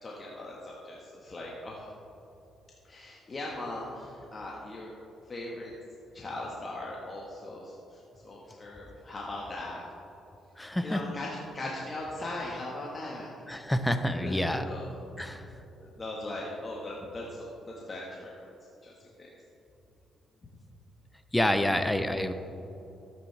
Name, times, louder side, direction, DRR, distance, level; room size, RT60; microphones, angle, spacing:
voice 1, 0.0-1.9 2.8-4.9 5.3-5.7 6.1-9.8 10.8-11.3 11.5-13.3 13.6-13.7 14.2-14.9 15.2-15.3 15.8-18.3 18.8-19.3, left 2 dB, 35° left, -3 dB, 1.5 m, -39 dB
voice 2, 10.6-11.1 13.5-14.7 15.2-15.5 21.3-22.3, left 1 dB, 10° left, 8 dB, 0.7 m, -28 dB
13.0 x 8.8 x 3.4 m, 2.9 s
cardioid pair, 90°, 0 cm